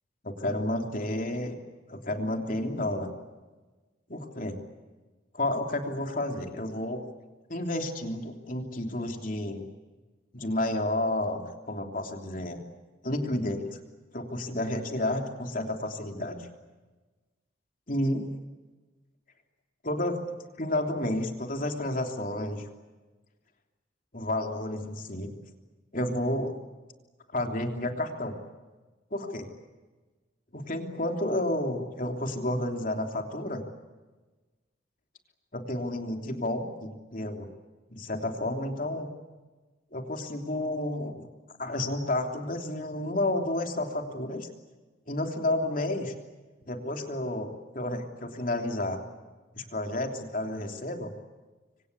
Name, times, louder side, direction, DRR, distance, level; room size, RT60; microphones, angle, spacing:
voice 1, 0.2-1.6 1.9-3.1 4.1-4.6 5.3-7.0 7.5-9.6 10.3-12.6 13.0-13.8 14.1-16.5 17.9-18.3 19.8-20.2 20.6-22.6 24.1-25.3 25.9-26.6 27.3-28.4 29.1-29.5 30.5-33.6 35.5-37.5 37.9-39.1 39.9-41.2 41.6-44.5 45.1-46.1 46.7-49.0 49.6-51.1, left 1 dB, 40° left, 4 dB, 3.2 m, -31 dB
26.5 x 25.0 x 8.3 m, 1.3 s
head